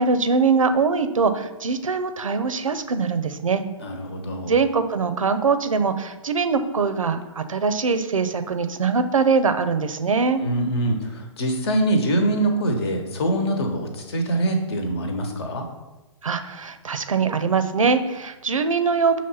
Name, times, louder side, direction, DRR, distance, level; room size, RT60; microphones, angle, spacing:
voice 1, 0.0-3.6 4.4-10.4 16.2-19.2, right 5 dB, 80° right, 9 dB, 0.5 m, -22 dB
voice 2, 3.8-4.6 10.4-15.6, right 1 dB, 50° left, 4 dB, 1.0 m, -24 dB
5.8 x 3.0 x 5.5 m, 1.1 s
figure-of-eight pair, 125°, 17 cm